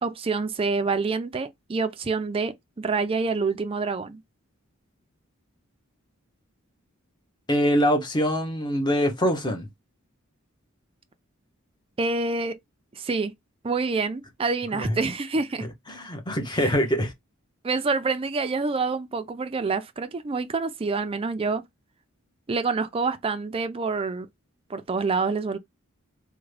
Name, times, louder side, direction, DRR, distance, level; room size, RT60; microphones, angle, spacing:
voice 1, 0.0-4.2 12.0-12.6 12.9-13.3 13.6-15.7 16.6-16.7 17.6-21.6 22.5-24.3 24.7-25.6, right 4 dB, 25° right, 0.4 m, -27 dB
voice 2, 7.5-9.7 14.7-15.0 15.9-17.1, equal, 20° left, 0.8 m, -24 dB
3.6 x 2.1 x 3.2 m
head